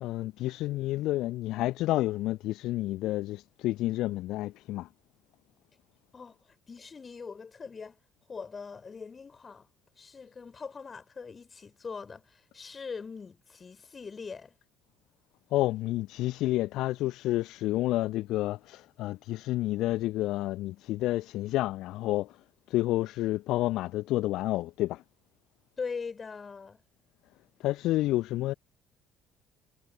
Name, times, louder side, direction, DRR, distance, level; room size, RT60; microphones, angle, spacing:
voice 1, 0.0-4.9 15.5-22.4 22.7-25.0 27.6-28.5, left 16 dB, 60° left, 0.6 m, -30 dB
voice 2, 6.1-8.0 8.3-9.7 10.0-14.6 25.8-26.8, left 5 dB, 30° left, 5.3 m, -41 dB
figure-of-eight pair, 50°, 0 cm